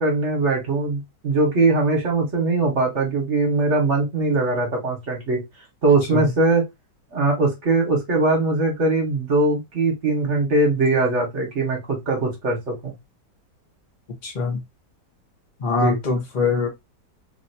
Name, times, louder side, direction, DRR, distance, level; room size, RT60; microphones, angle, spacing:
voice 1, 0.0-5.4 5.8-6.6 7.1-12.9 15.8-16.0, right 2 dB, 45° right, 1.4 m, -21 dB
voice 2, 14.2-14.6 15.6-16.7, left 4 dB, 35° left, 0.8 m, -23 dB
3.3 x 2.7 x 2.6 m
omnidirectional pair, 1.9 m